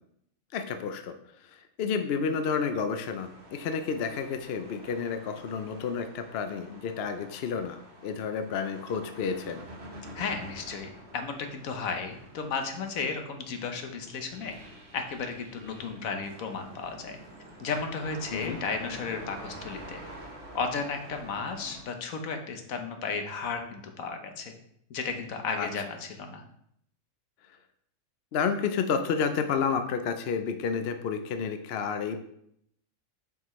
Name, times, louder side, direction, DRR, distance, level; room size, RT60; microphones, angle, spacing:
voice 1, 0.5-1.1 1.4-9.6 18.3-18.6 25.6-25.7 28.3-32.2, left 6 dB, 60° left, 7 dB, 0.7 m, -30 dB
sound 1, 3.1-21.8, right 1 dB, 50° right, 1.4 m, -47 dB
voice 2, 10.1-14.5 14.9-17.2 17.6-20.0 20.5-24.5 24.9-26.4, left 5 dB, 80° left, 5 dB, 1.3 m, -34 dB
7.1 x 5.6 x 3.1 m, 0.73 s
omnidirectional pair, 1.4 m